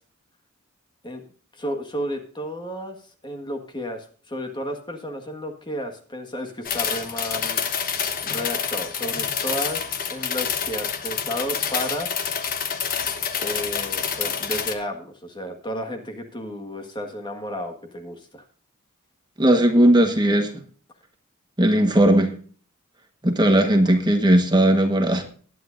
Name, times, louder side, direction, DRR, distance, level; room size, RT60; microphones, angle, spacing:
voice 1, 1.5-3.0 3.2-7.6 8.2-12.1 13.4-18.5 23.8-23.9, equal, 20° left, 5 dB, 1.6 m, -32 dB
sound 1, 6.7-14.7, left 7 dB, 40° left, 1.2 m, -27 dB
voice 2, 19.4-20.5 21.6-22.3 23.2-25.2, right 1 dB, 20° right, 5 dB, 1.3 m, -17 dB
20.0 x 9.4 x 2.6 m, 0.44 s
head